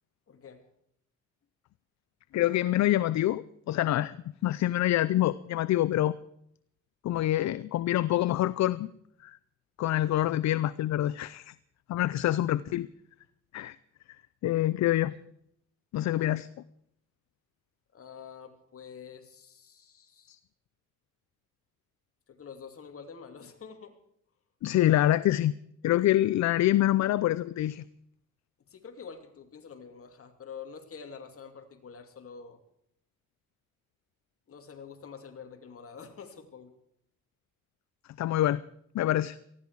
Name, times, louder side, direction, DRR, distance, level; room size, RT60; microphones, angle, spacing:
voice 1, 0.3-0.6 17.9-20.4 22.3-24.0 28.7-32.6 34.5-36.8 39.0-39.2, left 6 dB, 50° left, 6 dB, 2.7 m, -47 dB
voice 2, 2.3-4.2 4.4-6.2 7.0-8.9 9.2-9.4 9.8-11.5 11.9-12.9 13.5-13.8 14.4-15.1 15.9-16.5 20.3-20.4 24.6-25.5 25.8-27.8 38.2-38.6 38.9-39.4, left 14 dB, 65° left, 18 dB, 0.6 m, -26 dB
19.0 x 15.0 x 4.7 m, 0.73 s
cardioid pair, 90°, 30 cm